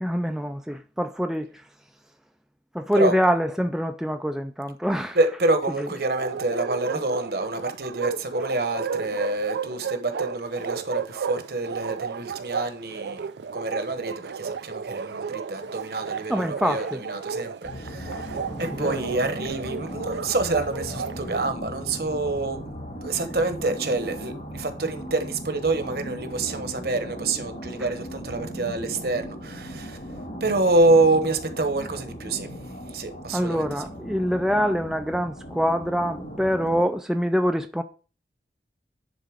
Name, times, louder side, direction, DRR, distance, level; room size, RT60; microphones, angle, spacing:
voice 1, 0.0-1.5 2.7-5.2 16.3-17.0 18.8-19.0 33.3-37.8, equal, 5° right, 0.4 m, -25 dB
voice 2, 5.1-22.7 23.0-30.0 30.4-32.5 32.9-33.7, right 2 dB, 60° right, 1.0 m, -27 dB
Bark, 6.2-21.5, right 6 dB, 85° right, 0.4 m, -33 dB
sound 1, 17.6-36.8, equal, 50° left, 2.3 m, -37 dB
10.5 x 4.1 x 5.0 m
head